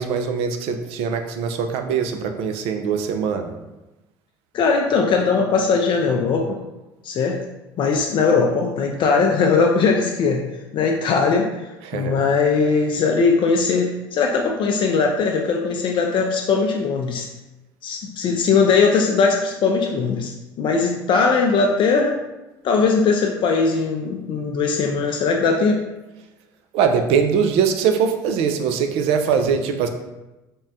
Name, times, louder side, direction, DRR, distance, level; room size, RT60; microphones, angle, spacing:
voice 1, 0.0-3.5 11.8-12.1 26.7-29.9, right 6 dB, 70° right, 6 dB, 0.4 m, -22 dB
voice 2, 4.5-6.6 7.0-7.5 7.8-10.4 10.7-11.5 11.9-17.3 17.8-20.3 20.6-22.2 22.6-25.8, left 4 dB, 50° left, 1 dB, 0.4 m, -19 dB
3.5 x 2.1 x 2.7 m, 1.0 s
supercardioid pair, 75°, 10 cm